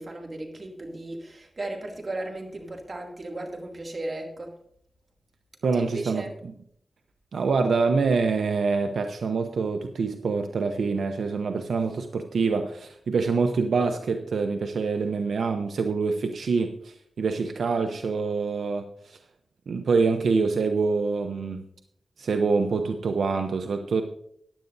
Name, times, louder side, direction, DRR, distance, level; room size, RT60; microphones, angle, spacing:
voice 1, 0.0-4.6 5.7-6.3, right 2 dB, 45° right, 2 dB, 2.4 m, -35 dB
voice 2, 5.6-6.2 7.3-19.2 19.7-21.6 22.2-24.0, right 4 dB, 85° right, 6 dB, 0.7 m, -25 dB
15.0 x 10.5 x 2.7 m, 0.69 s
cardioid pair, 65°, 0 cm